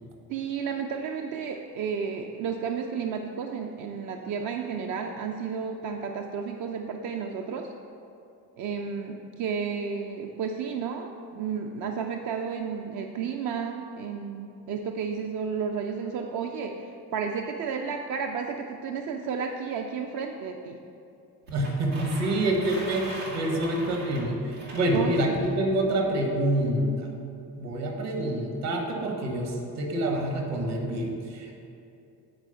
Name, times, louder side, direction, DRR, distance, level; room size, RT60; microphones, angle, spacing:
voice 1, 0.3-7.7 8.6-20.8 24.9-25.4, right 6 dB, 40° right, 3 dB, 0.5 m, -32 dB
voice 2, 21.5-27.1 27.6-31.5, right 1 dB, 60° right, 1 dB, 1.4 m, -27 dB
sound 1, 21.5-25.6, right 1 dB, 85° right, 1.3 m, -40 dB
7.4 x 4.7 x 5.7 m, 2.6 s
figure-of-eight pair, 45°, 48 cm